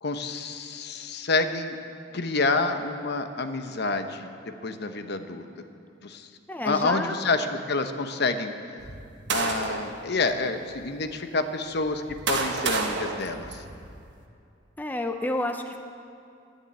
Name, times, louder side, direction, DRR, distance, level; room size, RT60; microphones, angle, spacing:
voice 1, 0.0-1.8 2.1-5.7 6.0-6.3 6.6-8.8 9.3-13.6, left 3 dB, 60° left, 8 dB, 0.9 m, -28 dB
voice 2, 6.5-7.3 14.8-15.8, left 1 dB, 10° left, 5 dB, 0.6 m, -30 dB
sound 1, 8.8-10.0 10.7-10.8 11.7-14.1, right 4 dB, 65° right, 1.3 m, -30 dB
12.5 x 10.5 x 8.9 m, 2.5 s
head